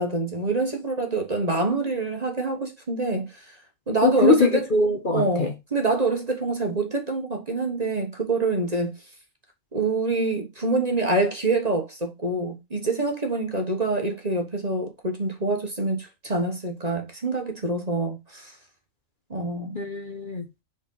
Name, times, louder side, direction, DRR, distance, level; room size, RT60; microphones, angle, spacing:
voice 1, 0.0-3.6 3.9-4.6 5.1-8.9 9.7-18.5 19.3-19.8, right 3 dB, 30° right, 1.4 m, -26 dB
voice 2, 4.0-5.5 19.7-20.6, left 3 dB, 40° left, 1.3 m, -22 dB
5.2 x 5.1 x 5.4 m
omnidirectional pair, 1.4 m